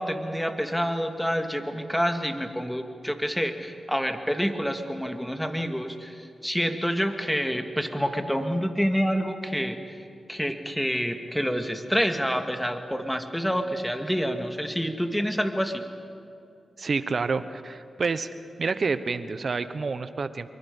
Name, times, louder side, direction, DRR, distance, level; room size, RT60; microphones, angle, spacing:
voice 1, 0.0-9.8 10.3-15.8, equal, 5° left, 5 dB, 2.3 m, -27 dB
voice 2, 16.8-18.3 18.6-20.5, right 4 dB, 60° right, 12 dB, 1.1 m, -28 dB
26.0 x 23.0 x 5.5 m, 2.5 s
cardioid pair, 50°, 0 cm